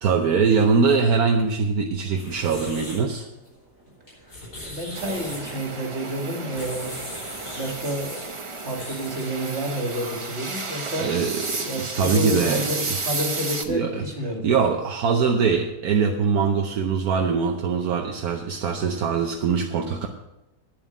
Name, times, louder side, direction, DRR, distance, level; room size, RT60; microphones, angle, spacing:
voice 1, 0.0-3.3 11.0-11.5 11.9-13.0 13.7-14.0 14.4-20.1, right 5 dB, 75° right, 3 dB, 1.3 m, -22 dB
sound 1, 2.0-9.5, left 1 dB, 85° left, 5.2 m, -40 dB
voice 2, 4.2-6.9 7.4-8.3 8.6-11.1 11.6-14.5, equal, 45° right, 1 dB, 2.5 m, -30 dB
sound 2, 4.9-13.6, right 3 dB, 25° right, 0.8 m, -32 dB
9.9 x 7.3 x 8.1 m, 0.95 s
omnidirectional pair, 1.6 m